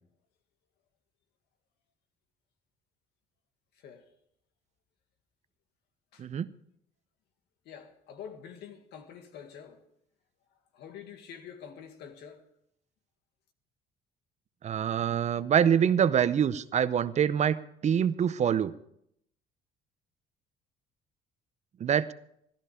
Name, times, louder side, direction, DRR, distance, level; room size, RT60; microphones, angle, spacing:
voice 1, 3.8-4.1 6.1-6.3 7.7-9.8 10.7-12.4, left 8 dB, 80° left, 1.9 m, -47 dB
voice 2, 14.6-18.7 21.8-22.1, right 8 dB, 40° right, 0.7 m, -25 dB
15.5 x 13.5 x 5.0 m
cardioid pair, 110°, 17 cm